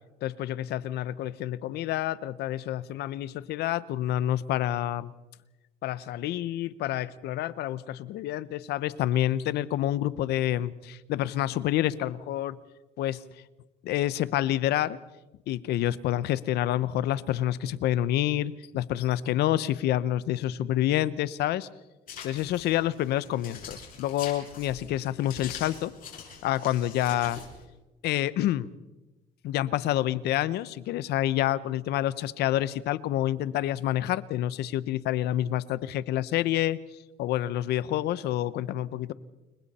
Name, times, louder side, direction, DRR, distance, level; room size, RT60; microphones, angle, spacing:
voice 1, 0.2-5.1 5.8-12.6 13.0-13.2 13.8-15.0 15.5-21.7 22.2-25.9 26.4-27.4 28.0-28.7 29.4-36.8 37.2-39.1, left 13 dB, 80° left, 17 dB, 0.9 m, -28 dB
sound 1, 22.1-27.6, left 6 dB, 55° left, 7.3 m, -44 dB
29.5 x 22.0 x 4.3 m, 1.1 s
cardioid pair, 110°, 17 cm